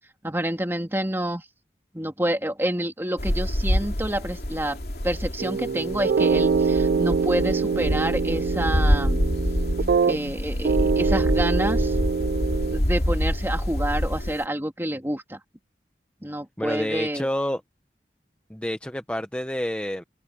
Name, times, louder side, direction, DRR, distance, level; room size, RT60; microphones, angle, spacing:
voice 1, 0.2-1.4 1.9-4.8 5.0-9.2 10.1-12.0 12.7-15.4 16.2-17.3, right 1 dB, 15° right, 2.3 m, -28 dB
sound 1, 3.2-14.4, equal, 60° left, 2.7 m, -26 dB
sound 2, 5.4-10.3 10.6-12.8, right 5 dB, 60° right, 0.3 m, -24 dB
voice 2, 16.6-17.6 18.5-20.0, equal, 5° left, 0.7 m, -28 dB
head